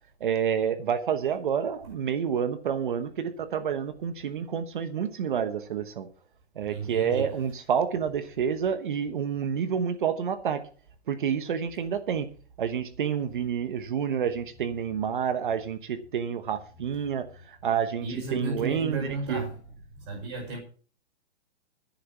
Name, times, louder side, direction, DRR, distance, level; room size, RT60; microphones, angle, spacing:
voice 1, 0.2-6.1 6.5-10.7 11.1-12.3 12.6-19.4, right 7 dB, 45° right, 1.1 m, -29 dB
voice 2, 6.6-7.2 18.0-19.6 20.0-20.6, right 3 dB, 25° right, 5.7 m, -34 dB
10.5 x 8.4 x 7.1 m
hypercardioid pair, 180°, 34 cm